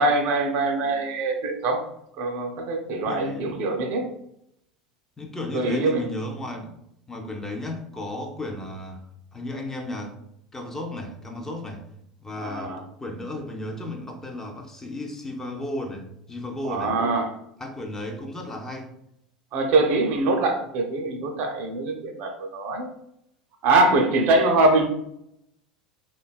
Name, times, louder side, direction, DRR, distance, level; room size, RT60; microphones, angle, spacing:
voice 1, 0.0-1.8 2.2-4.1 5.5-6.0 12.4-12.8 16.6-17.3 19.5-22.9 23.6-24.9, right 2 dB, 45° right, 4 dB, 0.5 m, -23 dB
voice 2, 3.0-3.5 5.2-6.8 7.1-9.1 9.3-10.1 10.5-11.8 12.2-16.9 17.6-18.9, left 1 dB, 10° left, 2 dB, 0.5 m, -34 dB
3.2 x 2.2 x 2.2 m, 0.76 s
figure-of-eight pair, 75°, 4 cm